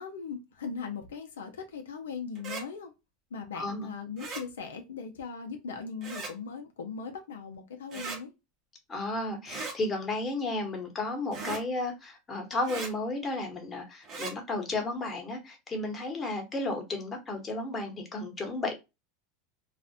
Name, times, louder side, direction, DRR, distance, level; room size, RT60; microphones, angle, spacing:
voice 1, 0.0-2.9 3.3-8.3, left 5 dB, 85° left, 0.4 m, -39 dB
sound 1, 2.3-2.6 4.2-4.4 6.0-6.3 7.9-8.2 9.5-9.8 11.3-11.6 12.6-12.9 14.0-14.3, right 4 dB, 45° right, 0.9 m, -38 dB
voice 2, 3.5-3.9 8.9-18.7, left 2 dB, 25° left, 0.9 m, -33 dB
2.4 x 2.1 x 2.6 m
hypercardioid pair, 100°, 0 cm